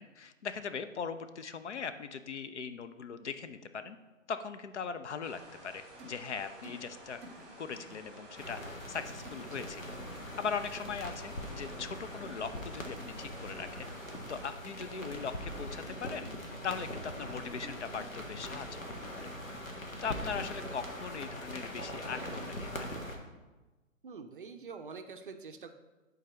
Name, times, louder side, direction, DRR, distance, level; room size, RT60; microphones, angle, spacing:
voice 1, 0.0-4.0 4.3-7.2 7.6-10.0 10.4-13.9 14.3-16.3 16.6-18.8 19.2-19.3 20.0-23.0, left 6 dB, 60° left, 11 dB, 0.6 m, -40 dB
sound 1, 5.2-14.5, right 1 dB, ahead, 1.3 m, -52 dB
sound 2, 6.0-6.2 6.6-6.9 7.2-7.4 7.7-8.0 9.2-9.5 10.8-11.1 12.2-12.5 12.8-13.2 14.4-14.8 15.9-16.4 17.6-18.2 19.8-20.0 22.1-22.6, right 2 dB, 20° right, 0.8 m, -52 dB
sound 3, 8.4-23.2, left 1 dB, 90° left, 1.3 m, -42 dB
voice 2, 24.0-25.7, right 5 dB, 45° right, 7 dB, 0.5 m, -46 dB
9.1 x 4.0 x 4.3 m, 1.2 s
figure-of-eight pair, 135°, 39 cm